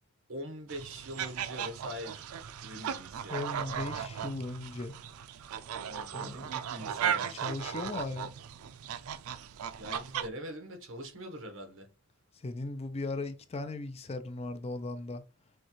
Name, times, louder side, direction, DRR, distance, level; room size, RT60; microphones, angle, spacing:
voice 1, 0.3-2.3 2.6-3.4 5.9-7.5 9.8-11.9, equal, 65° right, 1.2 m, -43 dB
sound 1, 0.7-10.3, right 8 dB, 90° right, 0.4 m, -37 dB
voice 2, 3.3-5.0 6.1-6.4 7.3-8.3 12.3-15.2, left 2 dB, 30° left, 0.5 m, -37 dB
6.4 x 2.3 x 3.0 m
head